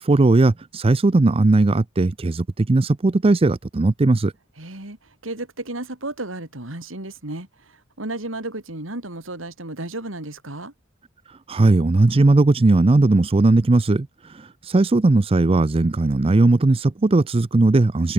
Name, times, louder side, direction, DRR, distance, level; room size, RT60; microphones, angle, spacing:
voice 1, 0.0-4.3 11.5-18.1, right 2 dB, 30° right, 0.5 m, -18 dB
voice 2, 4.6-10.7, right 2 dB, 85° right, 4.2 m, -33 dB
head